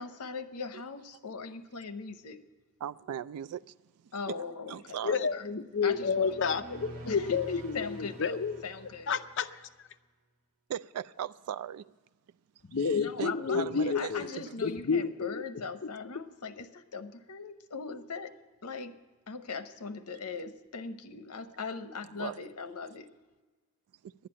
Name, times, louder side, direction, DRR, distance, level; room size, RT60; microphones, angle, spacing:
voice 1, 0.0-2.4 4.1-5.0 5.3-5.4 5.8-6.6 7.1-7.4 7.7-8.4 8.6-9.2 12.9-18.3 18.6-19.0 19.3-23.1, left 4 dB, 85° left, 0.8 m, -40 dB
voice 2, 2.8-3.7 4.3-4.4 4.7-5.3 10.7-11.9 12.8-14.6 21.5-21.6 22.2-22.4 24.0-24.1, right 9 dB, 85° right, 0.3 m, -38 dB
voice 3, 5.0-8.6 9.1-9.5 12.6-14.3 14.6-15.4, left 5 dB, 55° left, 0.6 m, -30 dB
sound 1, 5.8-9.7, right 2 dB, 65° right, 1.1 m, -48 dB
11.0 x 9.0 x 8.7 m
head